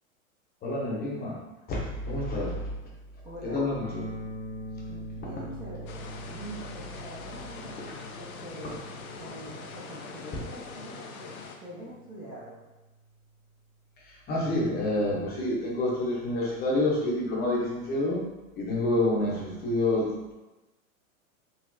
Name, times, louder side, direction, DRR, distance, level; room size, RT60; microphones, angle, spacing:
voice 1, 0.6-1.4 1.7-2.7 3.4-4.1 5.4-5.5 7.8-7.9 8.6-8.7 14.0-18.2 18.6-20.3, left 1 dB, 25° left, -4 dB, 0.7 m, -28 dB
voice 2, 3.2-3.6 3.9-4.0 4.9-5.9 6.3-7.8 8.2-8.9 9.2-12.6, right 1 dB, 15° right, -9 dB, 0.5 m, -44 dB
sound 1, 3.8-13.7, right 1 dB, 75° right, 1.1 m, -44 dB
sound 2, 5.9-11.6, left 5 dB, 85° left, 0.5 m, -43 dB
3.8 x 2.0 x 2.6 m, 1.1 s
hypercardioid pair, 105°, 42 cm